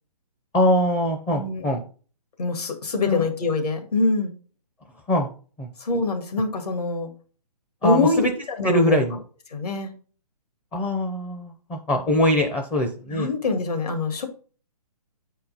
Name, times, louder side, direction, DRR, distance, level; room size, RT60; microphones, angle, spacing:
voice 1, 0.5-1.8 3.0-3.2 5.1-5.3 5.6-5.7 7.8-8.3 8.6-9.2 10.7-13.3, left 1 dB, 10° left, 3 dB, 0.5 m, -22 dB
voice 2, 1.3-1.7 2.4-4.3 5.8-7.1 7.8-9.0 9.5-9.9 13.1-14.3, left 3 dB, 70° left, 5 dB, 1.9 m, -24 dB
8.5 x 4.5 x 3.9 m, 0.39 s
hypercardioid pair, 145°, 21 cm